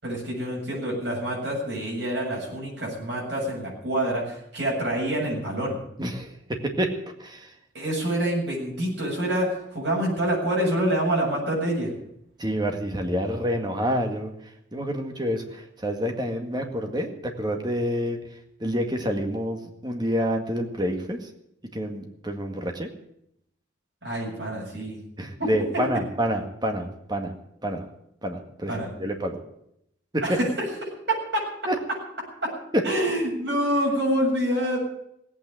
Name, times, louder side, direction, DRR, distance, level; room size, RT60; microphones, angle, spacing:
voice 1, 0.0-5.8 7.7-11.9 24.0-25.0 25.4-25.5 28.7-28.9 30.2-30.5 31.1-31.4 32.4-32.5 32.8-34.8, right 1 dB, 65° right, -3 dB, 7.6 m, -26 dB
voice 2, 6.0-6.9 7.2-7.5 12.4-14.3 14.7-18.2 18.6-21.2 21.7-22.9 25.2-27.3 27.6-27.9 28.2-28.7 29.0-29.4 30.3-30.4 31.7-31.8, equal, 20° right, 4 dB, 1.9 m, -28 dB
17.5 x 8.8 x 9.2 m, 0.75 s
head